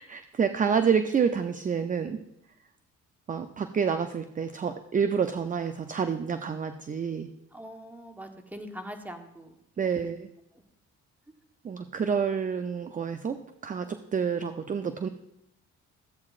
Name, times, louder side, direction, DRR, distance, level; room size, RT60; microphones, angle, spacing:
voice 1, 0.0-2.2 3.3-7.3 9.8-10.3 11.6-15.1, right 6 dB, 25° right, 9 dB, 0.5 m, -28 dB
voice 2, 7.5-9.5 9.9-10.0 10.5-10.7, equal, 5° right, 5 dB, 1.1 m, -42 dB
13.5 x 8.4 x 2.5 m, 0.82 s
cardioid pair, 90°, 30 cm